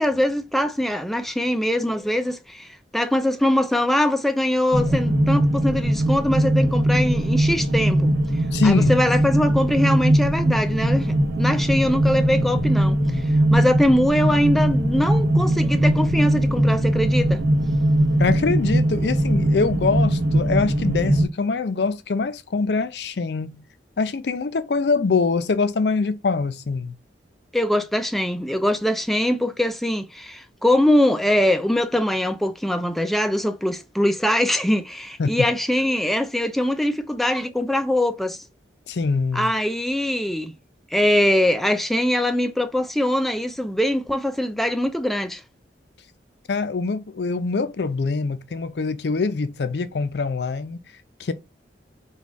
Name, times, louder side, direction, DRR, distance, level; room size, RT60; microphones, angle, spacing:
voice 1, 0.0-8.1 8.6-17.4 27.5-38.4 39.3-40.5 40.9-45.4, left 1 dB, ahead, 0.3 m, -22 dB
sound 1, 4.7-21.2, right 1 dB, 75° right, 0.8 m, -20 dB
voice 2, 8.5-8.9 18.2-23.6 24.0-26.9 35.2-35.5 38.9-39.5 46.5-50.8 51.2-51.3, left 4 dB, 65° left, 0.5 m, -24 dB
4.1 x 2.3 x 4.6 m
head